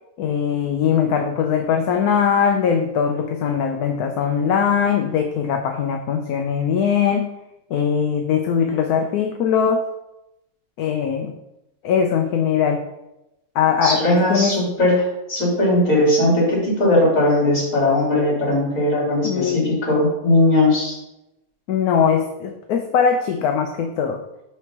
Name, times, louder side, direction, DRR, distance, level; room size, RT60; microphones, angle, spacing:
voice 1, 0.2-7.3 7.7-9.8 10.8-11.3 11.8-12.8 13.5-14.0 14.3-14.7 19.2-19.7 21.7-24.2, left 7 dB, 80° left, 4 dB, 1.1 m, -20 dB
voice 2, 13.8-20.9, left 1 dB, 55° left, -5 dB, 2.9 m, -18 dB
6.0 x 3.4 x 5.9 m, 0.90 s
omnidirectional pair, 1.6 m